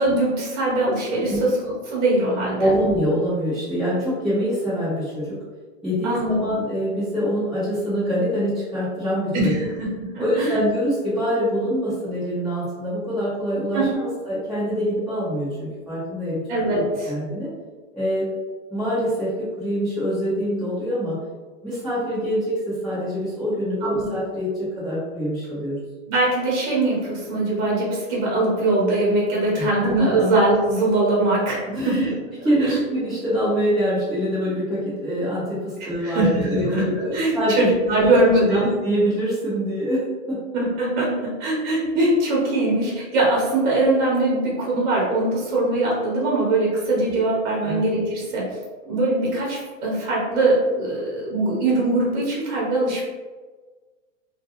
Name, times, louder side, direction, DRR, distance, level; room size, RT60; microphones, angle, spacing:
voice 1, 0.0-2.7 6.0-6.4 9.3-9.9 10.1-10.6 13.7-14.0 16.5-17.1 23.8-24.1 26.1-32.1 32.4-32.8 35.8-36.8 37.1-38.7 40.5-48.5 48.9-53.0, right 2 dB, 40° right, -4 dB, 1.1 m, -22 dB
voice 2, 2.6-5.4 5.8-9.7 10.2-16.4 16.7-17.5 17.9-18.3 18.7-21.2 21.6-25.8 29.5-30.1 31.7-38.1 38.5-40.4 47.6-47.8, equal, ahead, -16 dB, 0.8 m, -25 dB
2.4 x 2.2 x 2.9 m, 1.3 s
hypercardioid pair, 140°, 39 cm